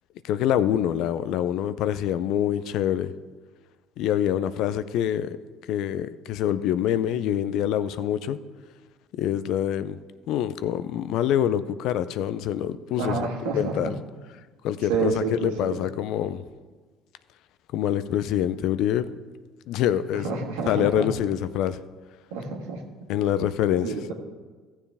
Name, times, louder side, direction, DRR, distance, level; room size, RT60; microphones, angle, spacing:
voice 1, 0.3-3.1 4.0-5.4 5.7-8.4 9.2-10.0 10.3-14.0 14.6-16.4 17.7-19.1 19.7-20.3 20.7-21.8 23.1-23.9, left 10 dB, 70° left, 14 dB, 0.5 m, -25 dB
voice 2, 13.0-13.9 14.9-15.8 20.2-21.1 22.3-22.8 23.8-24.1, right 4 dB, 85° right, 0 dB, 1.6 m, -28 dB
14.5 x 7.3 x 3.5 m, 1.4 s
hypercardioid pair, 70°, 0 cm